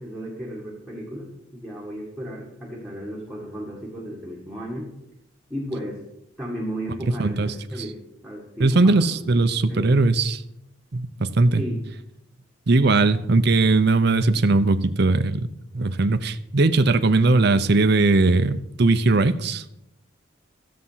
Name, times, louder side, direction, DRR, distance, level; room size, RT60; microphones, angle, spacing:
voice 1, 0.0-4.9 5.5-6.0 6.4-9.2 9.7-10.0 11.6-11.8, equal, ahead, -5 dB, 1.8 m, -34 dB
voice 2, 7.2-7.5 8.6-10.4 10.9-11.6 12.7-19.6, right 3 dB, 55° right, 11 dB, 0.7 m, -19 dB
13.5 x 7.4 x 5.7 m, 0.84 s
head